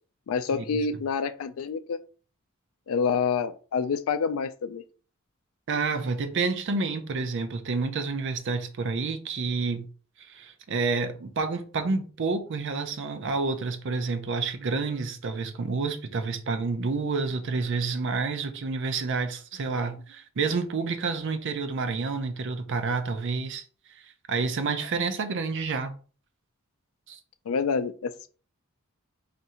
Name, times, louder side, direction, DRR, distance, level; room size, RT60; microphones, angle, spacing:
voice 1, 0.3-2.0 2.9-4.8 27.5-28.3, left 5 dB, 75° left, 0.4 m, -27 dB
voice 2, 5.7-9.9 10.2-23.6 24.0-24.1 24.3-25.9 27.1-27.2, right 4 dB, 60° right, 0.5 m, -29 dB
2.7 x 2.5 x 4.2 m
head